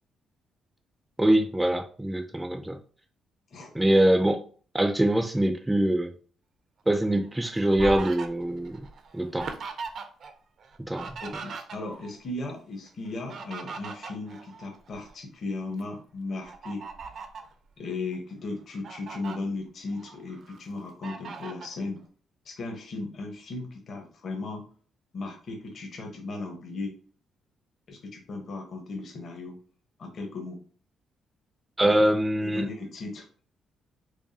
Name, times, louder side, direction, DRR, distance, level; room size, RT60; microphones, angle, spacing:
voice 1, 1.2-2.8 3.7-4.4 4.7-6.1 6.9-8.8 9.1-9.5 10.9-11.1 31.8-32.7, right 1 dB, 10° right, 6 dB, 0.4 m, -23 dB
voice 2, 3.5-3.8 11.2-16.9 17.8-22.0 22.4-24.7 25.1-27.0 27.9-29.6 30.0-30.6 31.8-31.9 32.4-33.3, left 3 dB, 55° left, 2 dB, 1.0 m, -36 dB
Fowl, 7.0-10.3 10.6-12.1 13.0-15.1 15.6-15.8 16.4-17.5 18.1-18.2 18.6-19.4 19.9-20.6 21.0-21.7, right 5 dB, 60° right, 0.6 m, -40 dB
4.6 x 2.4 x 2.7 m, 0.42 s
cardioid pair, 90°, 0 cm